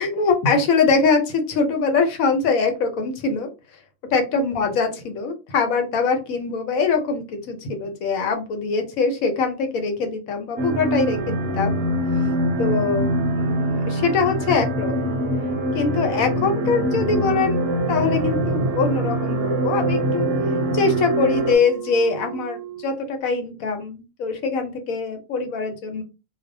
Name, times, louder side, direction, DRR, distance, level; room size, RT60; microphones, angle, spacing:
voice 1, 0.0-3.5 4.1-11.8 12.6-15.2 15.7-20.3 20.7-26.0, left 4 dB, 80° left, 5 dB, 1.1 m, -23 dB
sound 1, 10.6-21.6, right 1 dB, 70° right, 0.8 m, -23 dB
Wind instrument woodwind instrument, 16.8-23.0, right 11 dB, 10° left, 1.1 m, -36 dB
2.6 x 2.1 x 2.5 m, 0.29 s
omnidirectional pair, 1.4 m